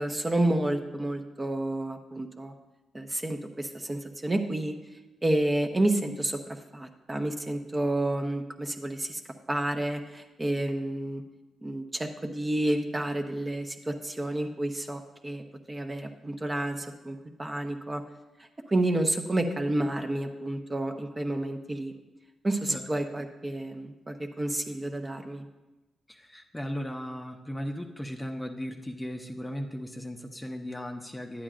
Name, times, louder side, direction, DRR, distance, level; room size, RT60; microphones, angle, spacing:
voice 1, 0.0-2.5 2.9-4.7 5.2-6.4 6.7-9.2 9.5-11.2 11.6-15.4 15.7-18.0 18.7-21.9 22.4-25.4, right 1 dB, 25° right, 4 dB, 0.9 m, -30 dB
voice 2, 26.1-31.4, equal, 15° left, 3 dB, 0.8 m, -37 dB
11.0 x 8.8 x 2.5 m, 1.1 s
cardioid pair, 65°, 0 cm